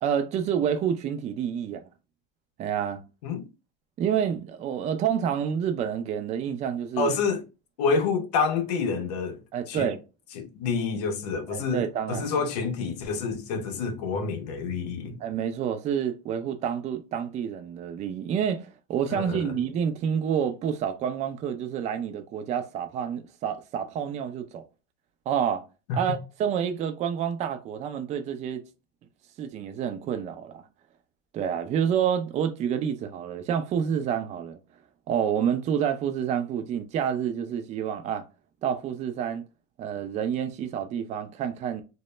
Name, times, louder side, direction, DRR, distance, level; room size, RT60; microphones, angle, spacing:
voice 1, 0.0-1.9 2.6-3.0 4.0-7.2 9.5-10.0 11.5-12.4 15.2-24.6 25.3-25.6 25.9-28.6 29.4-30.6 31.3-34.6 35.1-38.2 38.6-39.4 39.8-41.8, right 8 dB, 35° right, 0.4 m, -28 dB
voice 2, 7.0-7.4 7.8-9.9 10.3-15.2 19.1-19.6 25.9-26.2, left 5 dB, 85° left, 0.6 m, -28 dB
2.1 x 2.0 x 3.1 m
supercardioid pair, 110°, 20 cm